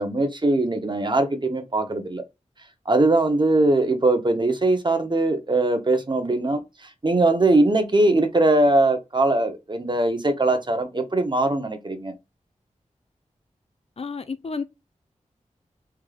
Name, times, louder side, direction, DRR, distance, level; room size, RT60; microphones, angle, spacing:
voice 1, 0.0-2.2 2.9-12.1, right 2 dB, 35° right, 1.0 m, -21 dB
voice 2, 14.0-14.6, left 4 dB, 50° left, 0.5 m, -31 dB
3.5 x 3.2 x 2.3 m
cardioid pair, 40°, 13 cm